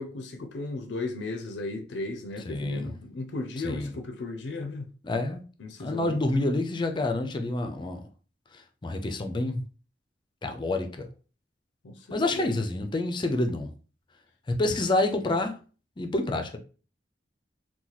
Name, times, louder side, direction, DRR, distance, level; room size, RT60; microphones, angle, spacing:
voice 1, 0.0-4.9 5.6-6.4 11.8-12.5 14.6-14.7, left 2 dB, 80° left, 0.5 m, -36 dB
voice 2, 2.5-2.9 3.6-3.9 5.0-5.4 5.8-8.0 8.8-9.6 10.4-11.1 12.1-13.7 14.5-15.5 16.0-16.6, left 2 dB, 25° left, 0.5 m, -28 dB
2.9 x 2.3 x 3.9 m
head